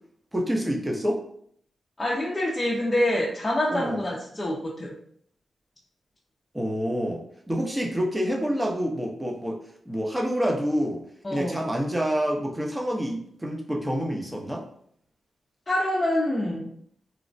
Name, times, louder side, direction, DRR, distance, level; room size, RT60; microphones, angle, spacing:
voice 1, 0.3-1.2 3.7-4.0 6.5-7.2 7.5-9.6 9.9-11.0 11.3-14.6, equal, 15° right, 0 dB, 0.7 m, -27 dB
voice 2, 2.0-4.9 11.2-11.6 15.7-16.7, left 1 dB, 25° left, -5 dB, 0.6 m, -26 dB
3.1 x 2.0 x 2.6 m, 0.65 s
cardioid pair, 65°, 0 cm